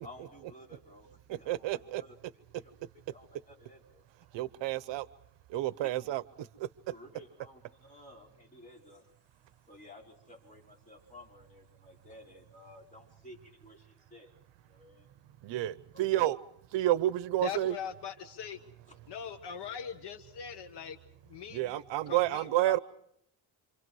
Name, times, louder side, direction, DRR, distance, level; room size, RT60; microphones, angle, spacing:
voice 1, 0.0-2.7 3.0-4.0 4.3-4.4 5.5-5.7 6.9-9.1 9.6-14.3 14.6-15.1 15.9-16.1 18.9-19.0, left 1 dB, 15° left, 5.2 m, -54 dB
voice 2, 1.5-2.0 4.3-5.0 5.5-6.2 6.6-6.7 15.4-16.4 16.7-17.7 21.5-22.8, right 15 dB, 70° right, 0.9 m, -29 dB
voice 3, 17.4-18.6 19.1-21.0 21.2-22.8, left 7 dB, 60° left, 1.4 m, -41 dB
27.5 x 27.0 x 4.7 m
cardioid pair, 125°, 46 cm